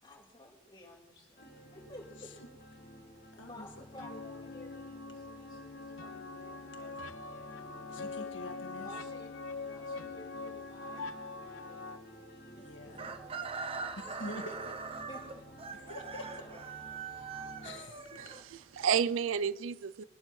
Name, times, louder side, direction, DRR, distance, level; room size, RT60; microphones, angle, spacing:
voice 1, 0.0-2.3 2.7-2.8 3.5-7.0 7.2-7.6 8.7-11.1 11.5-12.1 12.5-13.4 14.0-14.5 15.1-15.4 16.2-16.8, left 1 dB, 20° left, 3.9 m, -54 dB
sound 1, 1.4-17.8, equal, 45° left, 2.8 m, -53 dB
sound 2, 4.0-12.0, left 3 dB, 85° left, 1.0 m, -43 dB
voice 2, 7.9-8.9 12.5-13.2 13.9-14.7 15.9-16.3 17.1-17.3 17.6-18.2, left 1 dB, 65° left, 1.7 m, -45 dB
Chicken rooster, 12.9-18.9, right 5 dB, 30° right, 0.7 m, -42 dB
voice 3, 18.2-20.0, right 7 dB, 80° right, 0.4 m, -31 dB
22.5 x 12.0 x 3.2 m
head